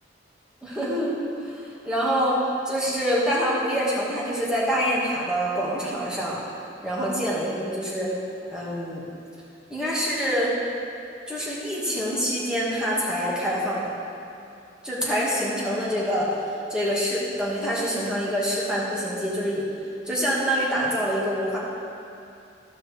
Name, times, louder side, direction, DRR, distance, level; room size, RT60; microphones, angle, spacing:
voice 1, 0.6-2.4 2.7-6.4 6.8-8.1 8.5-9.0 9.7-10.6 11.3-13.9 14.8-16.3 16.7-19.7 20.1-21.6, equal, 5° right, -7 dB, 1.8 m, -26 dB
16.0 x 6.0 x 3.3 m, 2.6 s
head